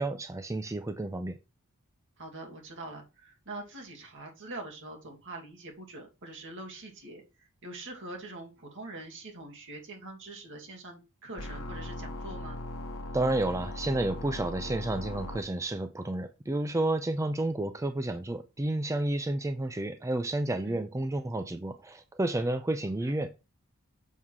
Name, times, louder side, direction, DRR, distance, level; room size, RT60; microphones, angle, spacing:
voice 1, 0.0-1.4 13.1-23.3, right 2 dB, 15° right, 0.4 m, -31 dB
voice 2, 2.2-12.6 20.6-20.8 23.0-23.2, right 2 dB, 60° right, 2.4 m, -44 dB
sound 1, 11.4-15.4, left 1 dB, 70° left, 1.0 m, -39 dB
7.3 x 3.6 x 6.2 m
head